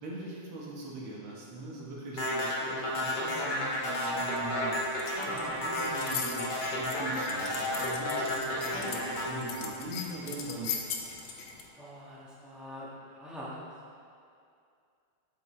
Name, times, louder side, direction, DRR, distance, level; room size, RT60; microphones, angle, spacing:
voice 1, 0.0-4.8 5.3-10.7, right 2 dB, 75° right, -4 dB, 2.2 m, -41 dB
sound 1, 2.2-10.5, left 1 dB, 30° left, 0.9 m, -32 dB
sound 2, 4.3-11.7, left 7 dB, 70° left, 1.3 m, -41 dB
voice 2, 11.7-13.5, equal, ahead, -8 dB, 1.1 m, -44 dB
7.8 x 7.4 x 3.2 m, 2.4 s
omnidirectional pair, 2.4 m